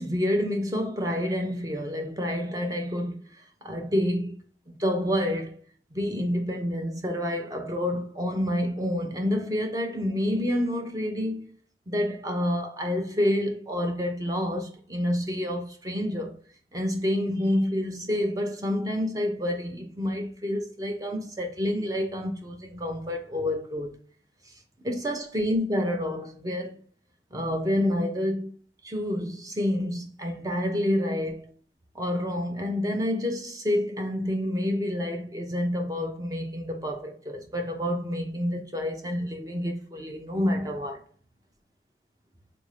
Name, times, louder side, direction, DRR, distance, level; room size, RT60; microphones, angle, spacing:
voice 1, 0.0-3.2 3.6-4.4 4.7-5.6 5.9-11.5 11.9-16.4 16.7-23.9 24.8-26.8 27.3-28.6 28.8-31.5 31.9-41.0, left 1 dB, 20° right, 0.5 m, -28 dB
3.5 x 2.6 x 3.2 m
head